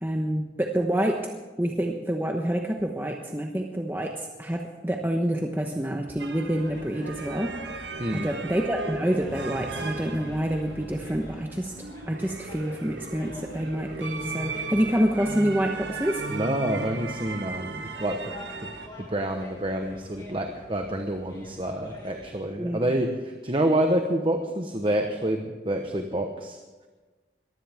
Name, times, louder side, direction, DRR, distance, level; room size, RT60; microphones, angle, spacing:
voice 1, 0.0-1.3 1.6-16.2 22.6-22.9, right 1 dB, 10° right, 1 dB, 1.1 m, -27 dB
sound 1, 6.2-18.9, right 3 dB, 90° right, 1.4 m, -37 dB
sound 2, 6.3-22.4, equal, 25° left, 6.0 m, -46 dB
voice 2, 16.3-18.3 18.6-18.7 19.0-26.6, right 1 dB, 30° right, 4 dB, 1.1 m, -28 dB
21.0 x 15.5 x 3.6 m, 1.3 s
head